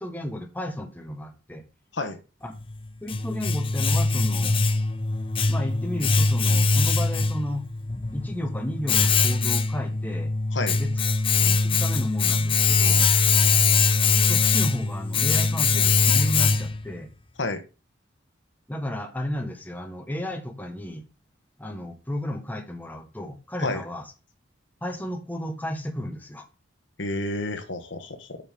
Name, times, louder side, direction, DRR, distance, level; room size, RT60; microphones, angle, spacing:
voice 1, 0.0-1.6 2.4-2.5 3.0-4.6 5.5-7.6 8.1-10.3 10.8-10.9 11.4-13.0 14.2-17.1 18.7-21.0 21.6-24.1 24.8-26.5, left 1 dB, 10° left, 1.3 m, -33 dB
Domestic sounds home sounds, 2.6-16.9, left 4 dB, 30° left, 0.7 m, -22 dB
voice 2, 27.0-28.4, left 2 dB, 65° left, 1.5 m, -30 dB
7.1 x 7.0 x 3.6 m
head